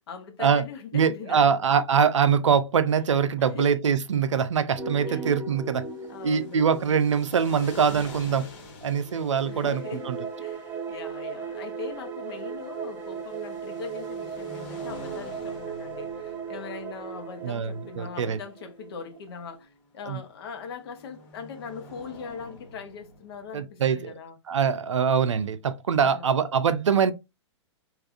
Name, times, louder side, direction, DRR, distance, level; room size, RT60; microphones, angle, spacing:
voice 1, 0.0-1.8 3.4-3.7 5.0-5.5 5.9-6.9 9.4-24.4 26.0-26.5, left 5 dB, 55° left, 0.8 m, -41 dB
voice 2, 0.9-5.8 6.2-8.5 8.8-10.2 17.4-17.7 18.0-18.4 20.1-20.2 23.5-24.1 24.5-27.1, right 7 dB, 80° right, 0.4 m, -23 dB
sound 1, 4.8-8.4 8.9-19.6, right 5 dB, 10° right, 0.4 m, -37 dB
sound 2, 5.7-23.6, left 1 dB, 40° left, 1.3 m, -48 dB
3.3 x 2.4 x 2.4 m
figure-of-eight pair, 115°, 15 cm